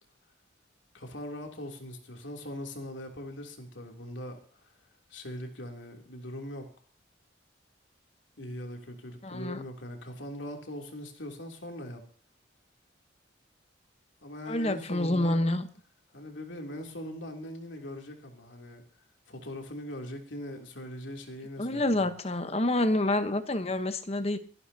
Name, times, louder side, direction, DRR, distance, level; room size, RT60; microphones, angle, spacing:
voice 1, 0.9-4.4 5.1-6.7 8.4-12.0 14.2-15.4 16.1-18.8 19.3-22.0, left 1 dB, 80° left, 2 dB, 3.1 m, -41 dB
voice 2, 9.2-9.6 14.5-15.7 21.6-24.4, left 1 dB, 35° left, 10 dB, 1.1 m, -28 dB
27.0 x 11.5 x 2.9 m, 0.41 s
head